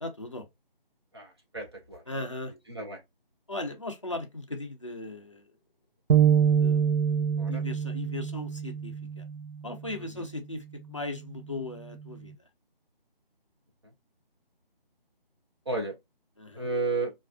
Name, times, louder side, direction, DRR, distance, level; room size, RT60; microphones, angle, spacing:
voice 1, 0.0-0.5 2.1-2.5 3.5-5.5 6.6-6.9 7.5-9.3 9.6-12.3 16.4-16.7, left 2 dB, 35° left, 0.5 m, -37 dB
voice 2, 1.1-2.0 2.7-3.0 7.4-7.6 10.1-10.2 15.7-15.9 16.5-17.1, right 3 dB, 30° right, 0.7 m, -32 dB
sound 1, 6.1-9.6, right 8 dB, 80° right, 0.5 m, -25 dB
3.1 x 2.4 x 2.3 m
figure-of-eight pair, 170°, 29 cm